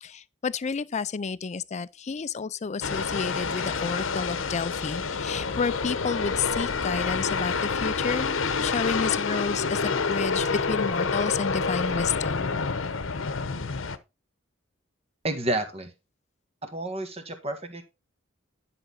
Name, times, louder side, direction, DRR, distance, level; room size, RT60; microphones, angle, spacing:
voice 1, 0.0-12.5, left 5 dB, 35° left, 0.4 m, -30 dB
sound 1, 2.8-14.0, left 4 dB, 80° left, 0.9 m, -28 dB
voice 2, 15.2-15.9 16.6-17.8, right 1 dB, 30° right, 1.7 m, -30 dB
11.0 x 6.0 x 4.0 m
head